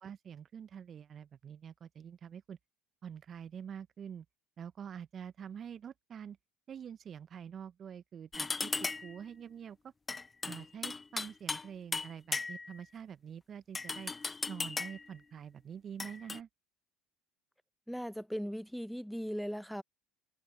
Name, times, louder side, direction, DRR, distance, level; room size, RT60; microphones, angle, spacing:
voice 1, 0.0-2.6 3.0-4.3 4.6-6.4 6.7-9.9 10.4-14.1 14.5-16.5, right 8 dB, 40° right, 0.7 m, -46 dB
sound 1, 8.3-9.2 10.1-11.7 11.9-12.8 13.7-15.1 16.0-16.4, left 4 dB, 20° left, 0.8 m, -37 dB
voice 2, 17.9-19.8, equal, ahead, 1.0 m, -38 dB
hypercardioid pair, 65°, 0 cm